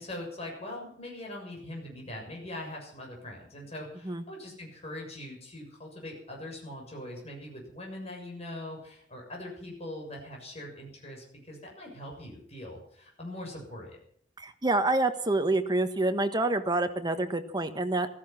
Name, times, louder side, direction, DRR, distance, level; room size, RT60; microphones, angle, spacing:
voice 1, 0.0-14.0, left 1 dB, 35° left, 0 dB, 7.0 m, -42 dB
voice 2, 14.4-18.1, right 2 dB, 25° right, 8 dB, 1.4 m, -27 dB
15.0 x 15.0 x 6.0 m, 0.62 s
head